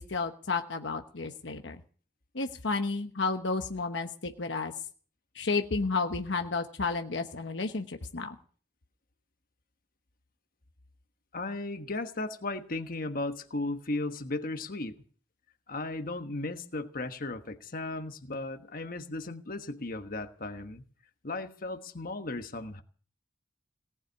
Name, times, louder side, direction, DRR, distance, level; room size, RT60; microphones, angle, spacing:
voice 1, 0.0-1.8 2.3-4.7 5.3-8.4, left 4 dB, 70° left, 5 dB, 1.1 m, -32 dB
voice 2, 11.3-14.9 15.7-20.8 21.2-22.8, left 2 dB, 50° left, 7 dB, 1.3 m, -36 dB
18.5 x 7.3 x 9.3 m, 0.43 s
head